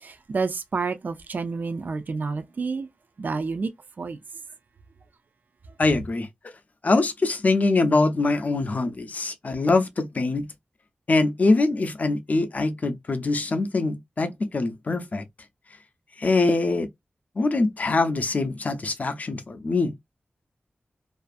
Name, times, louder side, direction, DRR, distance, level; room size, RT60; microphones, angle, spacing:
voice 1, 0.0-2.9 3.2-3.7 4.0-4.2, right 4 dB, 55° right, 0.3 m, -29 dB
voice 2, 5.8-6.3 6.8-10.5 11.1-15.3 16.2-16.9 17.4-19.9, left 3 dB, 45° left, 0.4 m, -23 dB
2.4 x 2.3 x 2.4 m
wide cardioid pair, 115°, 4 cm